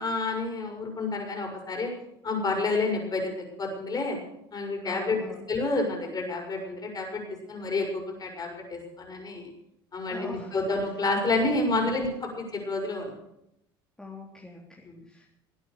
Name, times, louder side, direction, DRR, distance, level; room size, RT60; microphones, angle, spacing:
voice 1, 0.0-1.9 2.2-4.2 4.5-5.2 5.5-7.2 7.5-9.5 9.9-13.1 14.9-15.0, left 3 dB, 30° left, 1 dB, 6.7 m, -29 dB
voice 2, 4.8-5.5 10.1-10.6 11.7-12.1 14.0-15.3, left 2 dB, 5° left, -3 dB, 3.5 m, -43 dB
20.5 x 9.1 x 6.8 m, 0.81 s
hypercardioid pair, 70°, 13 cm